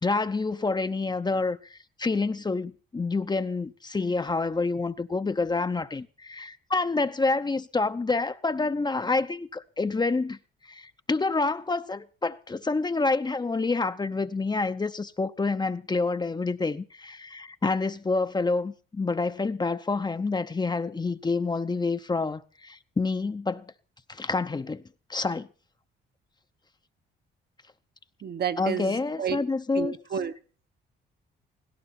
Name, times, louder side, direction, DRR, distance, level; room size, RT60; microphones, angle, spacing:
voice 1, 0.0-10.4 10.7-23.7 24.1-24.8 25.1-25.5 28.6-30.0, left 3 dB, 20° left, 0.8 m, -28 dB
voice 2, 28.2-29.4 29.7-30.3, right 7 dB, 55° right, 1.2 m, -31 dB
17.5 x 16.5 x 4.3 m
cardioid pair, 90°, 20 cm